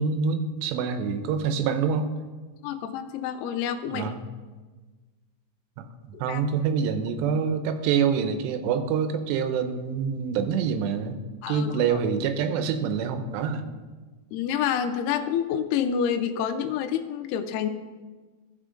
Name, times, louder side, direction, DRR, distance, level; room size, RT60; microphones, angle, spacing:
voice 1, 0.0-2.1 3.9-4.3 5.8-5.9 6.2-11.2 11.5-13.6, right 6 dB, 90° right, 8 dB, 2.9 m, -26 dB
voice 2, 2.6-4.1 6.3-6.4 11.4-12.0 14.3-17.7, left 8 dB, 80° left, 6 dB, 2.5 m, -28 dB
15.0 x 5.7 x 3.7 m, 1.3 s
omnidirectional pair, 4.9 m